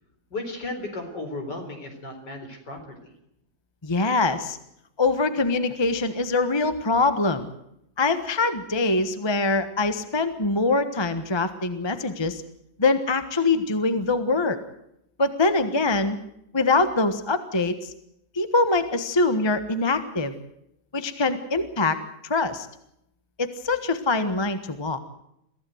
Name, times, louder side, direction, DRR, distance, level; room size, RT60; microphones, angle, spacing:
voice 1, 0.3-3.1, left 2 dB, 60° left, 4 dB, 4.8 m, -35 dB
voice 2, 3.8-4.6 5.0-7.5 8.0-12.4 12.8-14.6 15.2-16.2 16.5-17.9 18.3-20.3 20.9-22.0 22.2-22.7 23.4-25.0, left 3 dB, 15° left, 10 dB, 1.2 m, -23 dB
23.0 x 15.5 x 7.9 m, 0.79 s
omnidirectional pair, 2.1 m